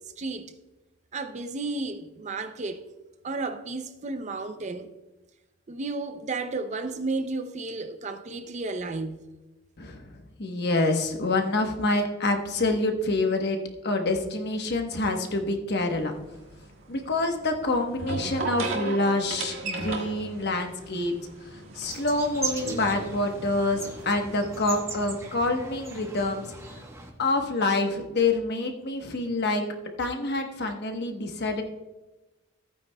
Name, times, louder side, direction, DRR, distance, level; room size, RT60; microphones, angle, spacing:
voice 1, 0.2-0.5 1.1-2.8 3.2-4.9 5.7-9.3, right 3 dB, 30° right, 0.5 m, -32 dB
voice 2, 9.8-10.1 10.4-13.6 13.8-16.1 16.9-21.1 21.5-26.5 27.2-29.6 30.0-31.6, left 2 dB, 50° left, 1.1 m, -27 dB
sound 1, 15.9-24.4, right 3 dB, 65° right, 1.5 m, -37 dB
sound 2, 21.8-27.1, right 3 dB, 15° right, 1.0 m, -38 dB
14.5 x 9.0 x 2.2 m
head